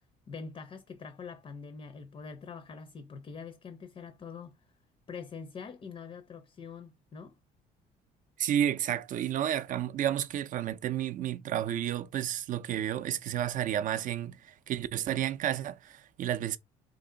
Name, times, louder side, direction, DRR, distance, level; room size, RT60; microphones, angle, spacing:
voice 1, 0.3-4.6 5.1-7.3, left 5 dB, 35° left, 0.5 m, -44 dB
voice 2, 8.4-16.6, right 11 dB, 50° right, 0.4 m, -31 dB
2.7 x 2.6 x 3.7 m
cardioid pair, 110°, 17 cm